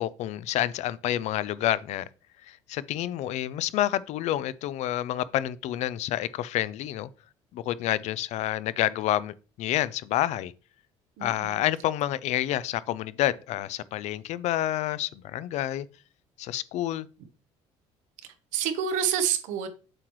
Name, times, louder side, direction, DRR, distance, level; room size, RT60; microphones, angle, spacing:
voice 1, 0.0-2.0 2.5-7.1 7.5-10.5 11.2-15.9 16.4-17.1, left 13 dB, 65° left, 0.4 m, -28 dB
voice 2, 11.2-11.6 18.5-19.7, right 8 dB, 85° right, 1.0 m, -28 dB
7.6 x 4.6 x 3.1 m
cardioid pair, 110°, 12 cm